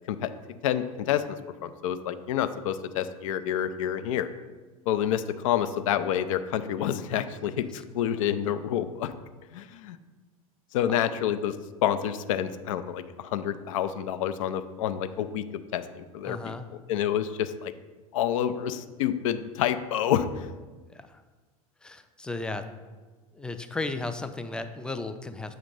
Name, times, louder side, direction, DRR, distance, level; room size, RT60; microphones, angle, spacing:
voice 1, 0.6-4.3 4.9-9.1 9.5-10.0 10.7-11.6 11.8-15.5 15.7-16.5 16.9-17.7 18.1-20.5, left 10 dB, 65° left, 11 dB, 0.4 m, -28 dB
voice 2, 16.2-16.7 20.9-21.2 21.8-22.6 23.3-25.5, left 3 dB, 5° left, 8 dB, 0.4 m, -35 dB
7.6 x 2.9 x 5.1 m, 1.3 s
figure-of-eight pair, 75°, 19 cm